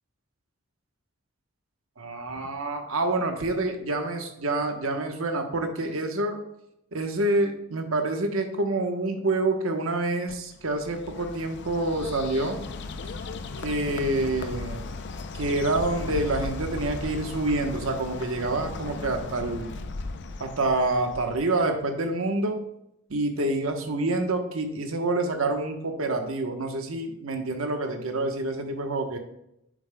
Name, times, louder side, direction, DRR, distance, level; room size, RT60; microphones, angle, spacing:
voice 1, 2.0-6.4 6.9-12.6 13.6-14.9 15.3-19.7 20.4-22.6 23.1-29.2, right 2 dB, 75° right, 4 dB, 1.0 m, -27 dB
Bird, 10.3-21.7, left 3 dB, 55° left, 0.5 m, -36 dB
8.6 x 7.0 x 2.2 m, 0.80 s
head